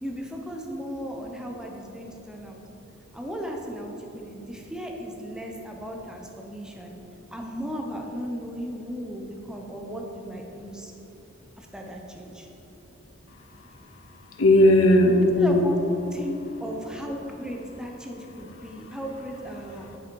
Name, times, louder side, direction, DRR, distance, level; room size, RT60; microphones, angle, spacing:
voice 1, 0.0-2.6 3.1-6.9 7.3-10.9 11.6-12.5 15.4-15.8 16.1-20.0, equal, 5° right, 0 dB, 0.8 m, -36 dB
voice 2, 14.3-15.7 18.6-18.9 19.8-20.0, left 1 dB, 70° left, 3 dB, 0.7 m, -19 dB
8.8 x 5.5 x 4.6 m, 3.0 s
head